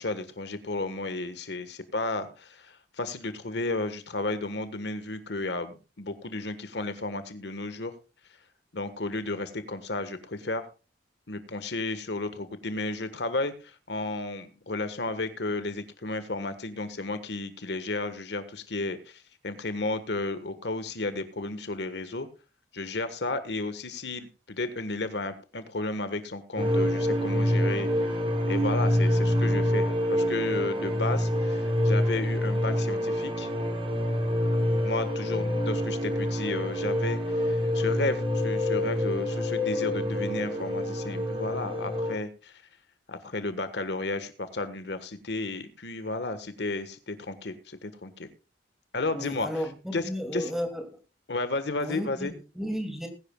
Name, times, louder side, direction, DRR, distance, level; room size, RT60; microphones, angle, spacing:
voice 1, 0.0-7.9 8.7-10.7 11.3-22.3 22.7-27.9 28.5-33.5 34.8-42.6 43.1-48.3 48.9-49.5 49.9-50.0 50.3-50.4 51.3-52.3, left 2 dB, 70° left, 1.4 m, -33 dB
sound 1, 26.6-42.2, left 1 dB, 30° right, 2.8 m, -26 dB
voice 2, 49.1-51.0 51.8-53.1, equal, ahead, 2.5 m, -33 dB
20.5 x 11.0 x 2.3 m
head